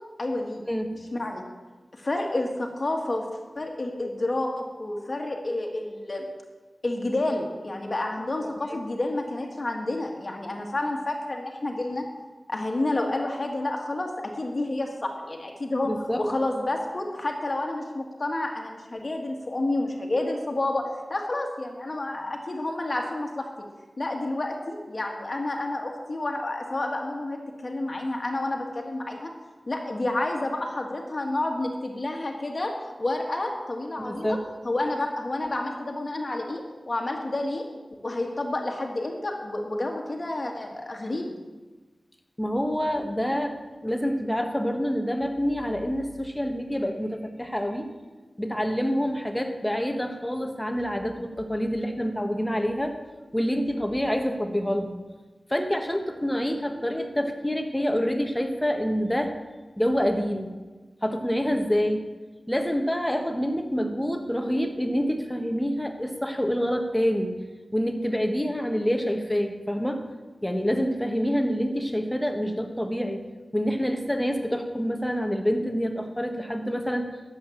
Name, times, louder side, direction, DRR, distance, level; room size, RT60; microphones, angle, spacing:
voice 1, 0.2-0.6 1.1-1.5 1.9-3.2 3.6-6.2 6.8-12.0 12.5-15.9 16.2-23.7 24.0-29.3 29.7-32.7 33.0-34.4 34.6-37.7 38.0-41.3, left 2 dB, 40° left, 2 dB, 1.8 m, -29 dB
voice 2, 15.8-16.2 34.0-34.4 42.4-43.6 43.8-47.9 48.4-52.9 53.3-55.0 55.5-59.3 59.8-60.5 61.0-62.0 62.5-67.3 67.7-70.0 70.4-73.2 73.5-77.1, equal, 10° left, 4 dB, 1.5 m, -27 dB
12.0 x 7.9 x 7.3 m, 1.3 s
wide cardioid pair, 90°, 0 cm